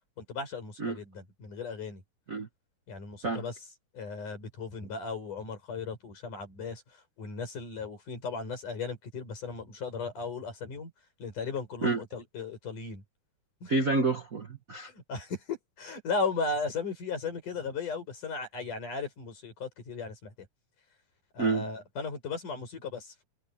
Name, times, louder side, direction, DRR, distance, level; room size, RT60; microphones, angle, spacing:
voice 1, 0.2-2.0 2.9-3.6 3.9-10.9 11.2-13.0 13.6-13.7 14.8-20.3 21.3-23.2, left 4 dB, 85° left, 7.7 m, -36 dB
voice 2, 13.7-14.9 21.4-21.7, right 3 dB, 40° right, 1.3 m, -28 dB
omnidirectional pair, 3.5 m